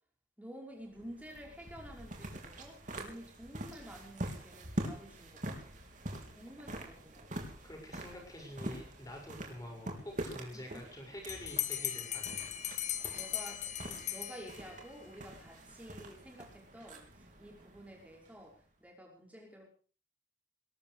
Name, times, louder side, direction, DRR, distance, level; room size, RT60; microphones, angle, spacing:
voice 1, 0.4-5.5 6.4-7.4 10.5-10.9 11.8-12.0 13.1-19.7, equal, 10° right, -1 dB, 5.6 m, -51 dB
sound 1, 0.9-18.5, right 1 dB, 45° right, 3.9 m, -45 dB
voice 2, 7.6-12.5, left 1 dB, 20° left, 1 dB, 7.1 m, -47 dB
Bell, 11.3-14.9, left 11 dB, 40° left, 1.2 m, -38 dB
21.0 x 12.5 x 5.0 m, 0.40 s
head